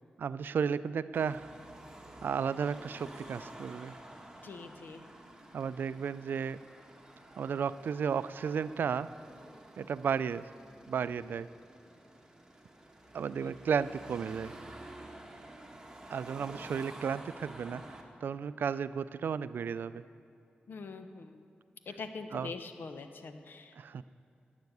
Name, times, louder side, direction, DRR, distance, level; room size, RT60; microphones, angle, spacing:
voice 1, 0.2-1.5 2.2-4.0 5.5-6.6 7.4-9.1 9.8-10.5 10.9-11.5 13.1-14.5 16.1-20.0 22.3-22.5 23.7-24.0, right 7 dB, 75° right, 15 dB, 0.3 m, -33 dB
Car passing by / Traffic noise roadway noise / Engine, 1.1-18.0, right 1 dB, 15° right, 1.6 m, -50 dB
voice 2, 4.4-5.1 13.4-13.5 20.7-21.4 21.9-23.7, left 4 dB, 70° left, 8 dB, 0.9 m, -44 dB
12.0 x 9.5 x 8.0 m, 2.4 s
cardioid pair, 75°, 4 cm